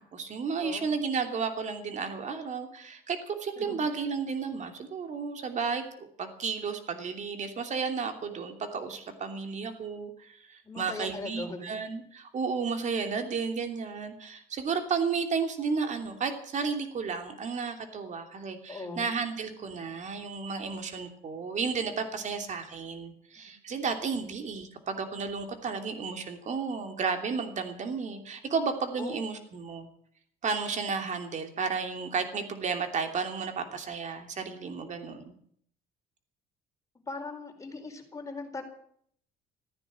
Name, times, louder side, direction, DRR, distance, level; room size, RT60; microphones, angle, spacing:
voice 1, 0.0-29.9 30.4-35.3, right 5 dB, 45° right, 6 dB, 2.9 m, -33 dB
voice 2, 0.6-0.9 3.6-3.8 10.6-11.8 18.7-19.1 29.0-29.1 37.1-38.6, left 3 dB, 20° left, 3 dB, 4.5 m, -39 dB
15.0 x 9.9 x 9.3 m, 0.64 s
cardioid pair, 110°, 17 cm